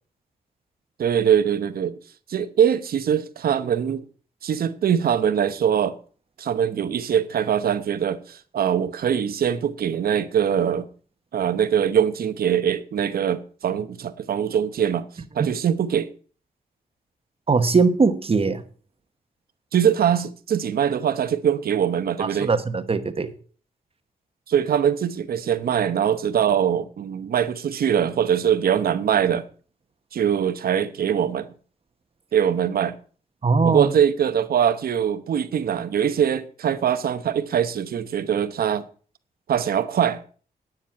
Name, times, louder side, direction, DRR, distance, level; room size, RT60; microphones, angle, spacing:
voice 1, 1.0-2.0 2.3-4.0 4.4-6.0 6.4-10.9 11.3-15.1 15.3-16.1 19.7-22.5 24.5-29.5 30.1-31.5 32.3-33.0 33.6-38.8 39.5-40.2, right 8 dB, 75° right, 0.9 m, -22 dB
voice 2, 17.5-18.6 22.2-23.3 33.4-33.9, right 4 dB, 40° right, 1.1 m, -20 dB
10.0 x 9.0 x 5.6 m
cardioid pair, 90°, 16 cm